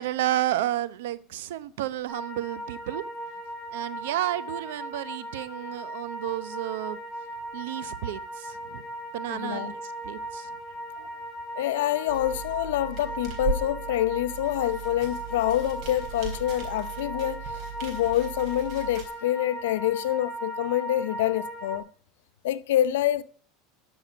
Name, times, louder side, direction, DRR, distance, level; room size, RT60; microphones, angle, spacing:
voice 1, 0.0-3.0 3.7-7.0 7.5-8.8 9.1-10.5, right 14 dB, 85° right, 0.8 m, -31 dB
sound 1, 2.1-21.8, right 1 dB, 25° right, 3.3 m, -38 dB
voice 2, 9.3-9.7 11.0-11.1 11.6-21.8 22.4-23.2, left 13 dB, 85° left, 0.7 m, -27 dB
sound 2, 12.1-19.1, right 5 dB, 60° right, 4.0 m, -37 dB
12.5 x 6.3 x 6.2 m
supercardioid pair, 115°, 0 cm